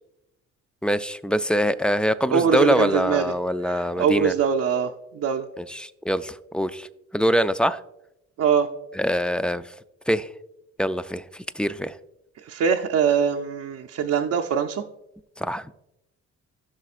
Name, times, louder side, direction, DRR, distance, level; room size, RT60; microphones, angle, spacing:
voice 1, 0.8-4.3 5.6-6.9 7.1-7.8 8.9-9.7 10.1-10.3 10.8-12.0 15.4-15.7, equal, 5° left, 13 dB, 0.3 m, -24 dB
voice 2, 2.3-3.3 3.7-5.5 8.4-8.7 12.5-14.8, right 7 dB, 60° right, 3 dB, 0.6 m, -23 dB
15.0 x 6.2 x 2.4 m, 0.87 s
cardioid pair, 90°, 30 cm